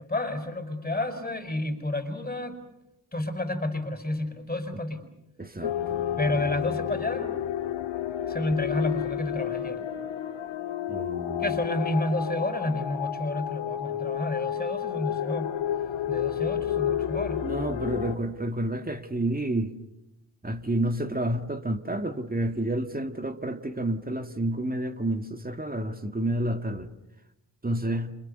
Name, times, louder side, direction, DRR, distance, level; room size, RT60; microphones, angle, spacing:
voice 1, 0.0-2.6 3.1-5.0 6.2-7.3 8.3-9.8 11.4-15.5 16.1-17.4, left 1 dB, 15° left, 5.3 m, -30 dB
voice 2, 5.4-6.0 10.9-11.6 17.4-19.8 20.4-26.9 27.6-28.2, right 1 dB, 20° right, 2.3 m, -30 dB
sound 1, 5.6-18.2, left 10 dB, 75° left, 2.3 m, -31 dB
30.0 x 27.0 x 6.8 m
hypercardioid pair, 45°, 46 cm